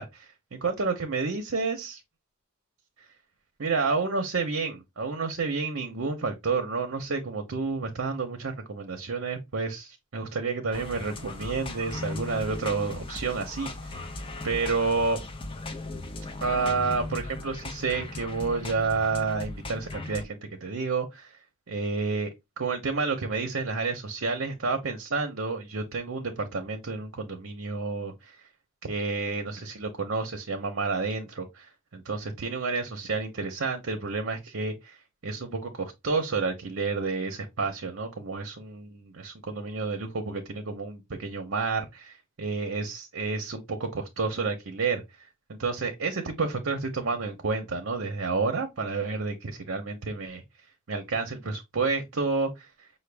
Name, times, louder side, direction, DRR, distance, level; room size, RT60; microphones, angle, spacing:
voice 1, 0.0-2.0 3.6-14.0 14.4-15.2 16.4-21.4 21.7-22.3 22.6-28.4 28.8-35.0 35.2-45.0 45.5-50.4 50.9-52.7, right 4 dB, 65° right, 0.7 m, -30 dB
sound 1, 10.7-20.2, left 2 dB, 25° left, 0.6 m, -37 dB
5.7 x 2.2 x 3.3 m
head